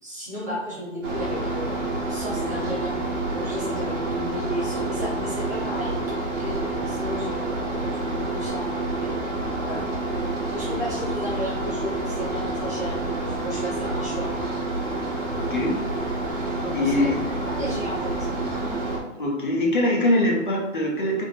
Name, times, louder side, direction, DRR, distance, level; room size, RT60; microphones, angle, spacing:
voice 1, 0.0-3.0 3.3-6.0 6.4-8.7 9.0-9.2 9.6-9.8 10.4-14.3 16.6-17.1 17.5-18.7, equal, 15° right, -9 dB, 0.6 m, -33 dB
sound 1, 1.0-19.0, right 2 dB, 65° right, 1.1 m, -28 dB
voice 2, 15.3-15.8 16.7-17.2 19.2-21.2, left 1 dB, 40° left, -2 dB, 0.7 m, -23 dB
3.5 x 2.0 x 3.8 m, 1.1 s
hypercardioid pair, 170°, 38 cm